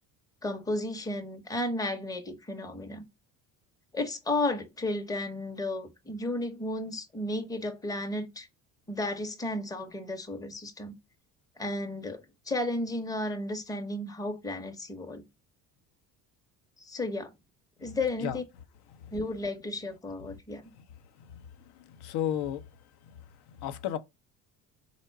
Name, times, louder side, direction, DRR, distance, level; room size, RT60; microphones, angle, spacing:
voice 1, 0.4-3.0 3.9-8.5 8.9-10.9 11.6-15.2 16.8-17.3 17.8-18.4 19.1-20.6, left 2 dB, 10° left, 0.7 m, -33 dB
voice 2, 21.7-22.7 23.6-24.0, left 10 dB, 60° left, 0.6 m, -32 dB
3.9 x 2.1 x 4.4 m
hypercardioid pair, 65°, 43 cm